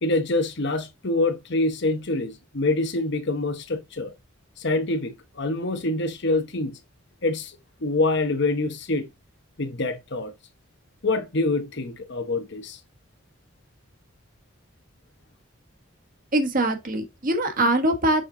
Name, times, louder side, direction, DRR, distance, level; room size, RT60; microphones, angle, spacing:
voice 1, 0.0-4.1 4.6-6.8 7.2-7.5 7.8-9.1 9.6-10.3 11.0-12.8, left 2 dB, 60° left, 1.0 m, -25 dB
voice 2, 16.3-18.3, right 1 dB, 45° right, 1.4 m, -23 dB
6.5 x 4.2 x 3.9 m
head